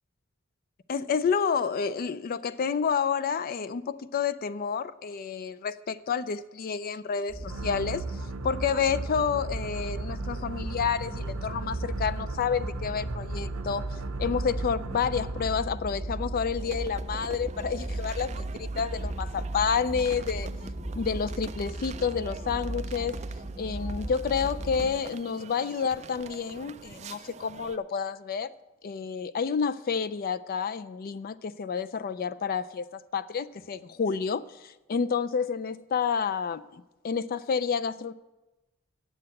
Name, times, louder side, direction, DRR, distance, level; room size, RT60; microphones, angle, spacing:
voice 1, 0.9-8.2 8.4-20.5 20.9-23.2 23.6-28.5 28.8-38.1, left 6 dB, 45° left, 15 dB, 0.3 m, -29 dB
sound 1, 7.3-24.9, right 1 dB, 15° right, 1.6 m, -36 dB
sound 2, 7.5-15.7, right 4 dB, 90° right, 0.6 m, -39 dB
sound 3, 16.6-27.8, right 5 dB, 35° right, 0.3 m, -46 dB
7.8 x 7.7 x 7.6 m, 1.0 s
head